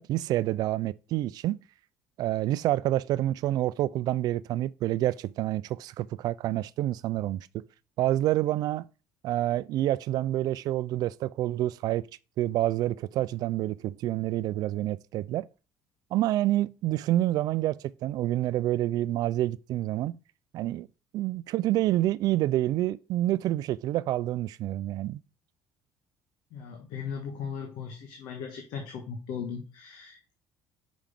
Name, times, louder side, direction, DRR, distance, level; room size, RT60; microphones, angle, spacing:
voice 1, 0.0-1.6 2.2-7.5 8.0-8.9 9.2-12.0 12.4-15.5 16.1-20.2 20.5-20.9 21.1-25.2, right 14 dB, 65° right, 0.4 m, -28 dB
voice 2, 26.5-30.3, left 6 dB, 75° left, 1.6 m, -38 dB
6.2 x 5.1 x 5.8 m
supercardioid pair, 85°, 7 cm